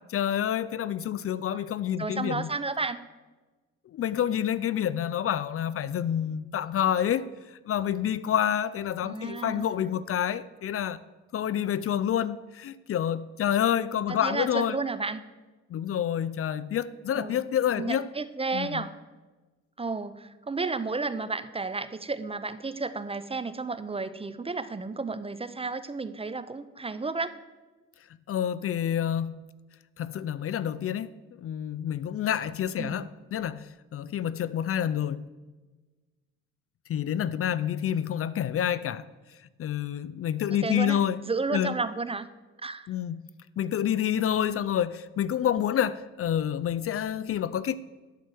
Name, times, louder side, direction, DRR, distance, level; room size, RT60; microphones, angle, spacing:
voice 1, 0.1-2.5 3.9-7.3 7.7-11.0 11.3-14.8 15.7-18.1 18.5-18.8 28.3-29.3 30.0-31.1 31.4-35.3 36.9-39.0 39.6-41.2 41.5-41.7 42.9-43.2 43.6-47.8, left 10 dB, 50° left, 0.5 m, -28 dB
voice 2, 2.0-3.0 9.0-9.7 14.1-15.2 17.1-17.4 17.8-18.9 19.8-27.3 32.8-33.1 40.6-41.0 41.2-42.3 42.6-42.9, right 3 dB, 20° right, 0.6 m, -32 dB
11.5 x 4.6 x 7.6 m
cardioid pair, 90°, 30 cm